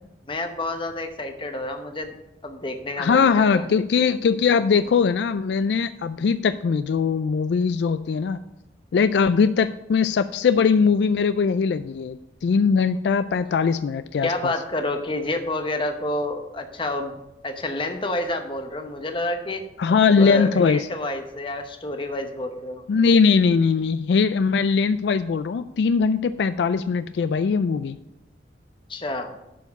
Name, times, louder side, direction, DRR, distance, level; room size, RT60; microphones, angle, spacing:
voice 1, 0.3-2.1 2.4-3.7 14.2-17.2 17.4-19.6 20.2-22.8 28.9-29.3, left 2 dB, 30° left, 6 dB, 0.9 m, -29 dB
voice 2, 3.0-8.4 8.9-12.2 12.4-14.5 19.8-20.9 22.9-28.0, left 5 dB, 70° left, 12 dB, 0.3 m, -20 dB
11.5 x 4.6 x 5.3 m, 0.93 s
head